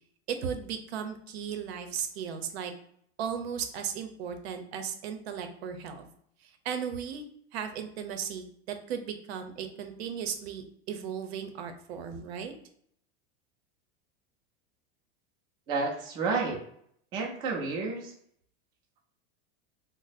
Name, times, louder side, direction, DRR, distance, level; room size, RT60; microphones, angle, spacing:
voice 1, 0.3-2.7 3.2-6.1 6.4-7.3 7.5-12.5, right 7 dB, 85° right, 7 dB, 0.7 m, -36 dB
voice 2, 15.7-16.6 17.1-18.1, right 4 dB, 15° right, -1 dB, 0.3 m, -30 dB
2.6 x 2.0 x 4.0 m, 0.68 s
supercardioid pair, 170°, 31 cm